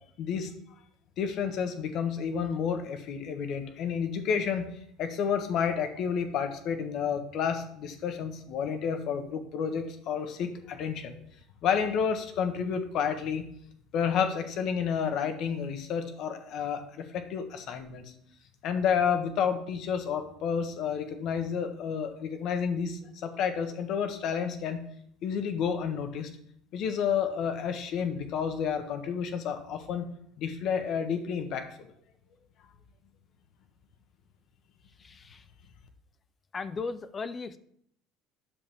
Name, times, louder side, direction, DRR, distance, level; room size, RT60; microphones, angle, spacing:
voice 1, 0.2-0.5 1.2-4.7 5.0-11.2 11.6-13.4 13.9-18.1 18.6-24.8 25.2-26.3 26.7-30.1 30.4-31.7, left 7 dB, 50° left, 7 dB, 1.2 m, -30 dB
voice 2, 35.0-35.4 36.5-37.6, left 4 dB, 25° left, 13 dB, 0.5 m, -36 dB
10.0 x 7.1 x 3.5 m, 0.67 s
cardioid pair, 135°, 0 cm